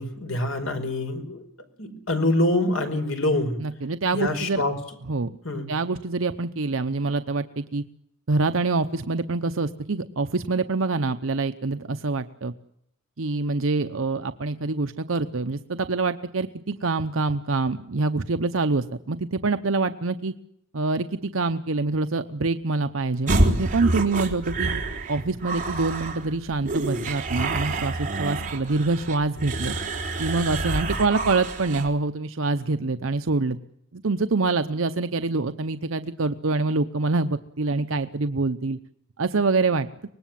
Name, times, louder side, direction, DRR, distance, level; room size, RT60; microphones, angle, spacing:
voice 1, 0.0-1.4 1.8-3.6 4.1-4.7 5.4-5.7, left 2 dB, 80° left, 7 dB, 5.1 m, -25 dB
voice 2, 3.6-4.6 5.1-5.3 5.7-7.8 8.3-12.5 13.2-20.3 20.7-24.7 25.1-29.8 30.2-33.6 33.9-38.8 39.2-39.9, right 3 dB, 75° right, 9 dB, 0.8 m, -25 dB
sound 1, 23.3-31.9, right 2 dB, 40° right, 3.8 m, -28 dB
24.5 x 19.5 x 7.5 m, 0.74 s
head